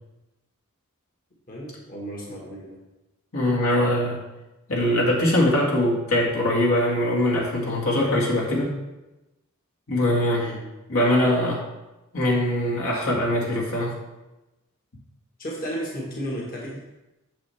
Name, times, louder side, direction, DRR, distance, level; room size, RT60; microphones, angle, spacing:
voice 1, 1.5-2.8 10.3-10.6 15.4-16.8, equal, 40° left, -2 dB, 1.6 m, -33 dB
voice 2, 3.3-4.2 4.7-8.7 9.9-10.5 10.9-11.6 12.1-13.9, left 1 dB, 70° left, -4 dB, 2.0 m, -22 dB
8.7 x 7.0 x 3.5 m, 1.0 s
head